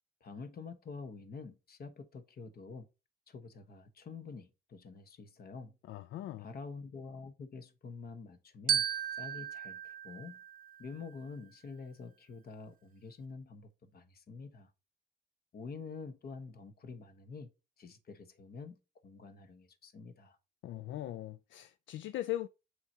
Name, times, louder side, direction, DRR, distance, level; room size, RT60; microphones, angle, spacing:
voice 1, 0.2-2.9 3.3-5.8 6.4-8.9 9.1-10.4 10.8-14.7 15.5-17.5 17.8-20.4, left 4 dB, 50° left, 1.2 m, -47 dB
voice 2, 5.9-6.5 20.6-22.5, left 14 dB, 70° left, 0.4 m, -39 dB
Glockenspiel, 8.7-11.2, right 8 dB, 45° right, 0.8 m, -35 dB
7.2 x 4.7 x 2.8 m
cardioid pair, 90°, 20 cm